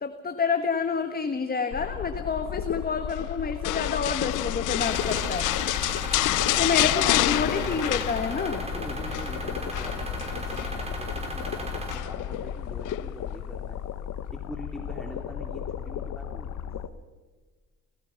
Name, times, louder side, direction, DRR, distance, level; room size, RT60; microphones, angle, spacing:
voice 1, 0.0-5.5 6.6-8.6, left 5 dB, 30° left, 8 dB, 1.4 m, -28 dB
sound 1, 1.7-16.9, left 9 dB, 70° left, 1.2 m, -34 dB
sound 2, 3.6-8.7 8.9-9.3 9.7-10.8 11.9-12.3 12.9-13.0, left 19 dB, 90° left, 0.5 m, -28 dB
sound 3, 4.8-12.0, right 1 dB, 20° right, 5.6 m, -36 dB
voice 2, 6.5-7.1 8.6-13.8 14.2-16.7, left 1 dB, ahead, 1 dB, 2.8 m, -42 dB
29.0 x 16.5 x 5.8 m, 1.3 s
cardioid pair, 90°, 30 cm